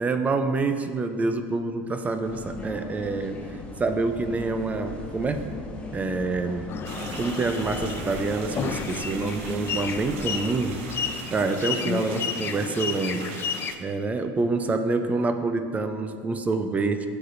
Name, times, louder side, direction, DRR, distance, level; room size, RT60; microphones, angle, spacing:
voice 1, 0.0-3.4 3.8-5.5 5.9-6.8 7.2-10.8 11.3-13.4 13.8-17.1, right 3 dB, 20° right, 8 dB, 0.5 m, -27 dB
sound 1, 2.2-11.1, left 2 dB, 15° left, 1.2 m, -38 dB
sound 2, 6.7-13.7, left 7 dB, 35° left, 0.4 m, -32 dB
sound 3, 6.8-13.8, right 7 dB, 75° right, 0.7 m, -42 dB
11.5 x 6.7 x 2.6 m, 2.2 s
supercardioid pair, 110°, 7 cm